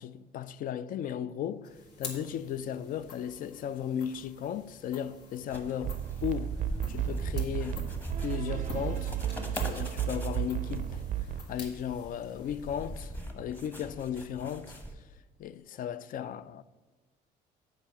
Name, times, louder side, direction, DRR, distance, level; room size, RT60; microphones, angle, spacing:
voice 1, 0.0-6.6 6.9-7.9 8.2-14.8 15.4-16.6, left 9 dB, 55° left, 0.4 m, -36 dB
sound 1, 1.6-13.3, left 2 dB, 75° left, 1.8 m, -48 dB
sound 2, 5.5-14.9, equal, 10° left, 1.0 m, -43 dB
sound 3, 5.8-11.4, right 11 dB, 50° right, 0.4 m, -33 dB
7.3 x 5.0 x 6.5 m
cardioid pair, 110°, 17 cm